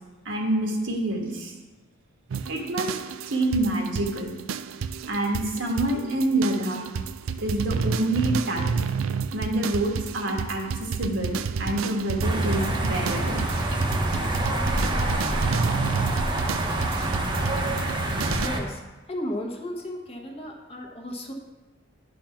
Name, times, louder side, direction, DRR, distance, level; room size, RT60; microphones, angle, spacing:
voice 1, 0.2-1.5 2.5-3.0 3.3-4.3 5.1-6.8 7.4-8.8 9.3-13.4, right 1 dB, 65° right, 1 dB, 1.5 m, -27 dB
sound 1, 2.3-18.5, right 5 dB, 80° right, 0.4 m, -31 dB
sound 2, 12.2-18.6, right 1 dB, 25° right, 1.0 m, -26 dB
voice 2, 18.3-18.8 19.1-21.3, left 1 dB, 30° left, 0 dB, 1.2 m, -34 dB
10.0 x 4.2 x 5.7 m, 1.2 s
head